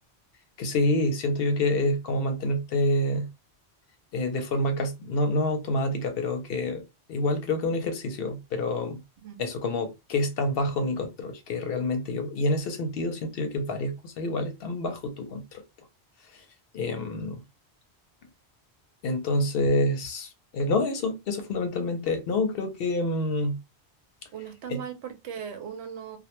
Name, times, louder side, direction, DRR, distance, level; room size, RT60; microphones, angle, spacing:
voice 1, 0.6-3.3 4.1-6.8 7.1-9.0 9.4-15.6 16.3-16.4 16.7-17.4 19.0-23.6 24.7-24.8, left 1 dB, 65° left, 0.7 m, -27 dB
voice 2, 24.3-26.2, right 8 dB, 85° right, 0.9 m, -38 dB
2.1 x 2.1 x 2.9 m
omnidirectional pair, 1.1 m